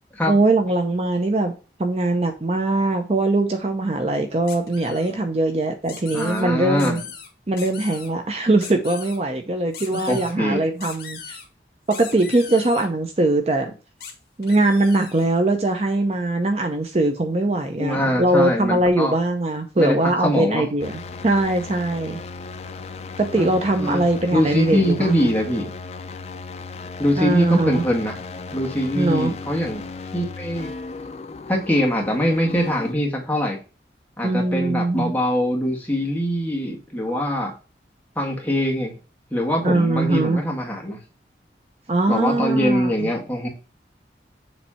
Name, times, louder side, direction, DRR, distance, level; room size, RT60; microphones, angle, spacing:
voice 1, 0.3-1.5 1.8-7.0 7.5-11.4 11.9-13.7 14.4-22.2 23.2-25.3 27.2-27.8 29.0-29.3 34.2-35.1 39.6-40.4 41.9-43.1, right 2 dB, 35° right, 5 dB, 0.6 m, -21 dB
sound 1, 4.5-5.1 5.8-6.4 6.8-7.3 7.6-8.1 8.6-9.2 9.7-10.3 10.8-11.4 11.9-12.9 14.0-14.1 14.4-15.2, left 7 dB, 60° left, 1.6 m, -39 dB
voice 2, 6.1-7.0 10.1-10.7 17.8-19.1 19.8-19.9 20.2-20.7 23.4-24.0 24.3-25.7 27.0-28.2 28.5-29.9 30.1-30.7 31.5-33.6 34.2-37.5 38.1-38.9 39.3-41.0 42.1-43.5, equal, 10° left, -2 dB, 1.6 m, -23 dB
sound 2, 20.8-32.9, left 4 dB, 35° left, 0.4 m, -36 dB
7.1 x 3.3 x 4.2 m, 0.34 s
head